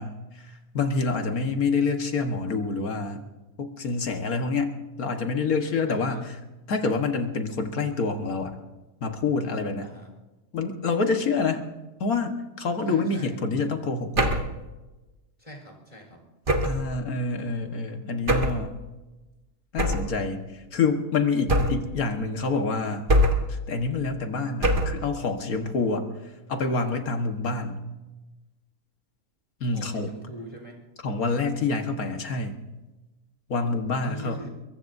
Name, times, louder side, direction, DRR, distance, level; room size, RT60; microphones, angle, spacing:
voice 1, 0.0-3.2 3.6-6.4 6.7-8.6 9.0-9.9 10.5-11.6 12.0-14.3 16.6-18.7 19.7-23.1 23.5-26.1 26.5-27.8 29.6-30.1 31.0-32.6 33.5-34.5, left 4 dB, 70° left, 5 dB, 1.9 m, -27 dB
voice 2, 5.9-6.2 9.8-10.1 12.8-13.4 15.4-16.2 29.7-30.8 34.0-34.5, equal, 25° left, 1 dB, 4.4 m, -42 dB
sound 1, 14.2-14.6 16.5-16.9 18.3-18.7 19.8-20.2 21.5-21.9 23.1-23.6 24.6-25.0, equal, 35° right, 1.7 m, -22 dB
23.0 x 23.0 x 2.7 m, 1.1 s
omnidirectional pair, 1.6 m